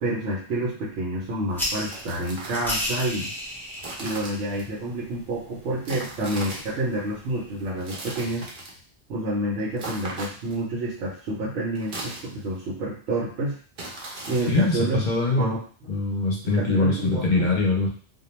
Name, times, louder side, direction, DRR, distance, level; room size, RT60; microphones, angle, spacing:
voice 1, 0.0-3.3 4.0-8.5 9.1-13.6 14.3-15.0 15.4-15.6 16.5-17.5, right 1 dB, 90° right, -6 dB, 1.0 m, -28 dB
sound 1, 1.5-7.7, left 1 dB, 5° left, 0.3 m, -35 dB
sound 2, 1.8-2.8 3.8-4.7 5.9-6.8 7.8-8.8 9.8-10.6 11.8-12.6 13.8-14.8, right 2 dB, 55° right, 0.7 m, -38 dB
voice 2, 14.5-15.6 15.9-17.9, left 3 dB, 50° left, -1 dB, 0.7 m, -23 dB
2.3 x 2.2 x 3.0 m, 0.42 s
omnidirectional pair, 1.2 m